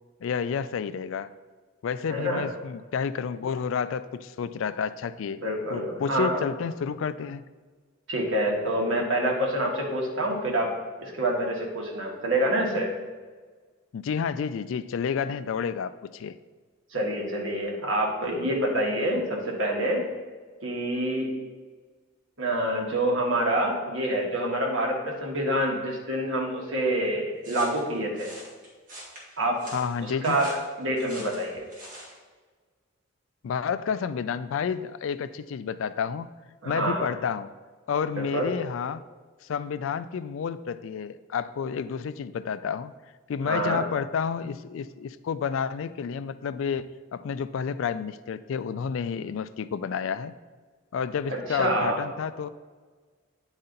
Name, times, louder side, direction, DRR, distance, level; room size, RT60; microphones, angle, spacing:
voice 1, 0.2-1.3 1.8-5.4 5.7-7.4 13.9-16.4 29.7-30.4 33.4-36.3 36.6-37.5 37.9-39.0 39.5-42.9 43.3-50.3 50.9-52.5, left 6 dB, 70° left, 14 dB, 0.3 m, -30 dB
voice 2, 2.1-2.5 5.4-6.4 8.1-10.7 11.0-12.9 16.9-20.0 20.6-21.3 22.4-28.3 29.4-29.7 30.0-31.7 36.6-37.1 38.2-38.5 43.4-43.9 51.3-52.0, right 1 dB, 65° right, -1 dB, 1.5 m, -27 dB
sound 1, 27.4-32.2, right 1 dB, 40° right, 1.9 m, -44 dB
9.7 x 4.1 x 3.9 m, 1.4 s
head